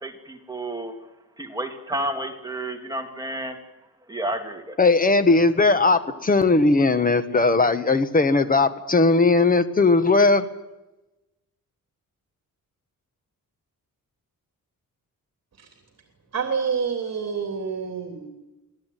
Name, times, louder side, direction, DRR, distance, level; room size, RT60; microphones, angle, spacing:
voice 1, 0.0-0.9 1.4-3.6 4.1-4.8, right 1 dB, 10° right, 3 dB, 2.5 m, -31 dB
voice 2, 4.8-10.4, left 3 dB, 25° left, 10 dB, 1.5 m, -18 dB
voice 3, 16.3-18.3, right 6 dB, 50° right, 4 dB, 3.2 m, -27 dB
26.0 x 17.5 x 9.3 m, 1.0 s
wide cardioid pair, 175°, 34 cm